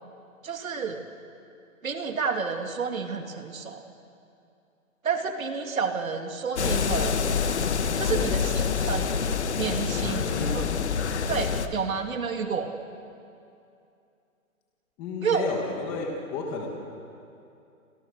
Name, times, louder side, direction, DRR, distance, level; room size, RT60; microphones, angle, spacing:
voice 1, 0.4-1.0 1.8-3.8 5.0-7.2 8.0-9.2 9.6-10.7 11.3-12.7 15.2-15.5, right 6 dB, 70° right, 4 dB, 3.0 m, -30 dB
sound 1, 6.6-11.7, left 6 dB, 50° left, 1.5 m, -26 dB
voice 2, 8.0-9.0 9.9-10.6 11.3-11.6 15.0-16.7, left 4 dB, 10° left, 0 dB, 1.4 m, -33 dB
30.0 x 25.0 x 6.6 m, 2.6 s
hypercardioid pair, 180°, 42 cm